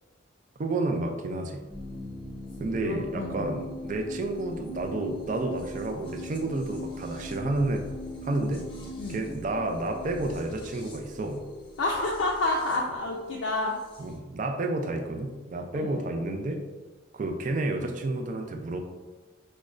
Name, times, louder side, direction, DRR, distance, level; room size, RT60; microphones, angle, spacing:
voice 1, 0.6-1.6 2.6-7.9 8.2-8.6 9.1-11.5 14.0-16.6 17.1-18.8, right 2 dB, 40° right, 4 dB, 0.3 m, -30 dB
sound 1, 1.7-14.2, equal, 25° left, 0.5 m, -41 dB
voice 2, 2.8-3.6 9.0-9.2 11.8-13.8 15.7-16.0, left 2 dB, 80° left, -2 dB, 0.4 m, -29 dB
5.1 x 2.1 x 2.4 m, 1.3 s
head